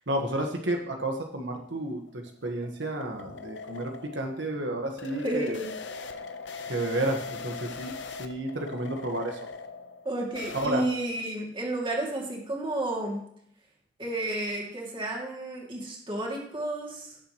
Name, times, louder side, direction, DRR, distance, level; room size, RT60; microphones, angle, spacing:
voice 1, 0.1-2.0 2.4-5.6 6.7-9.4 10.5-10.8, right 1 dB, 85° right, 2 dB, 1.5 m, -31 dB
sound 1, 1.7-10.7, left 4 dB, 85° left, 1.0 m, -41 dB
voice 2, 5.2-5.7 10.0-13.2 14.0-17.2, right 1 dB, 30° right, -1 dB, 2.6 m, -31 dB
17.5 x 7.4 x 3.1 m, 0.70 s
head